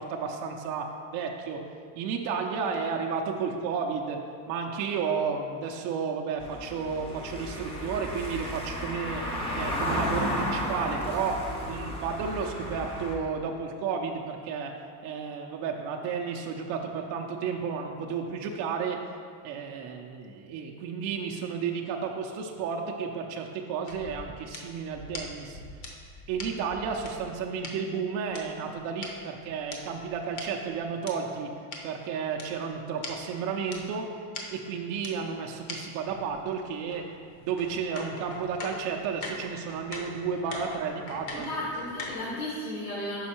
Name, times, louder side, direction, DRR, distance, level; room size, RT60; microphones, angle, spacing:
voice 1, 0.0-1.7 2.0-4.2 4.5-9.2 9.5-14.7 15.0-19.0 19.4-25.6 26.3-31.5 31.8-34.1 34.5-37.1 37.4-41.5, right 6 dB, 45° right, 1 dB, 0.4 m, -32 dB
Car passing by / Engine, 6.4-13.1, equal, 15° left, 0.4 m, -33 dB
sound 1, 23.9-27.7 28.3-31.1 31.7-31.8 32.4-32.5 32.7-32.8 33.0-33.2 33.7-33.8 34.3-34.4 35.0-35.1 35.7-35.8 36.1-42.4, left 2 dB, 40° left, 0.8 m, -42 dB
voice 2, 41.3-43.3, left 1 dB, 70° left, -6 dB, 1.5 m, -34 dB
5.6 x 5.2 x 4.3 m, 2.1 s
cardioid pair, 165°, 45 cm